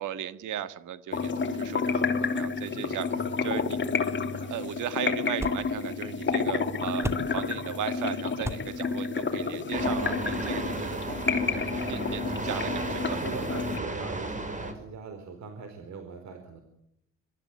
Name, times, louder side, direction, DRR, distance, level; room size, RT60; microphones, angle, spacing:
voice 1, 0.0-3.1 3.4-3.8 4.4-11.2 11.7-13.2, right 10 dB, 80° right, 12 dB, 1.8 m, -36 dB
sound 1, 1.1-13.8, left 5 dB, 40° left, 3.0 m, -30 dB
voice 2, 3.0-3.4 13.2-16.6, right 4 dB, 65° right, 6 dB, 4.3 m, -42 dB
sound 2, 3.7-10.8, right 1 dB, 10° right, 2.3 m, -41 dB
sound 3, 9.7-14.7, right 2 dB, 25° right, 5.9 m, -34 dB
26.0 x 14.0 x 9.4 m, 0.79 s
cardioid pair, 90°, 30 cm